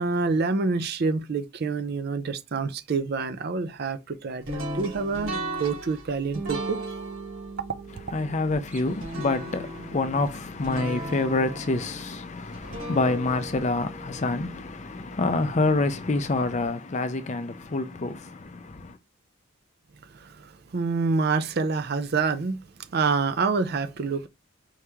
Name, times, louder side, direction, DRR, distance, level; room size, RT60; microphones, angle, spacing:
voice 1, 0.0-6.8 20.1-22.6 22.9-24.3, right 4 dB, 45° right, 0.4 m, -27 dB
sound 1, 4.5-15.5, right 1 dB, 70° right, 2.4 m, -37 dB
voice 2, 8.1-19.0, left 2 dB, 35° left, 0.5 m, -27 dB
4.7 x 2.9 x 3.4 m
head